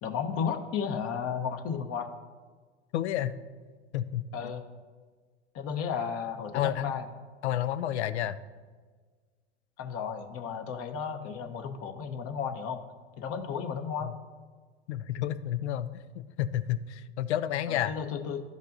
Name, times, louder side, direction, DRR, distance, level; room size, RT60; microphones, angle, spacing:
voice 1, 0.0-2.1 4.3-4.6 5.5-7.0 9.8-12.8 13.2-14.1 17.7-18.4, left 7 dB, 40° left, 4 dB, 1.0 m, -33 dB
voice 2, 2.9-3.4 3.9-4.5 6.5-7.0 7.4-8.4 14.0-14.1 14.9-17.9, left 11 dB, 75° left, 12 dB, 0.5 m, -31 dB
13.5 x 5.3 x 2.6 m, 1.5 s
hypercardioid pair, 75°, 34 cm